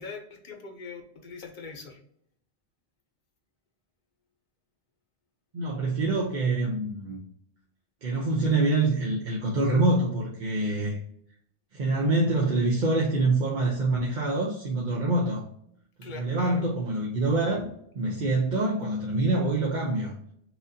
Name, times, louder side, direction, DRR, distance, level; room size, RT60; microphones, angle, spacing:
voice 1, 0.0-2.0 16.0-16.6, left 4 dB, 50° left, 3 dB, 0.9 m, -41 dB
voice 2, 5.5-7.2 8.0-11.0 11.7-15.5 16.1-17.6 17.9-20.1, right 2 dB, 50° right, -3 dB, 0.8 m, -25 dB
6.1 x 2.6 x 2.7 m, 0.70 s
omnidirectional pair, 1.1 m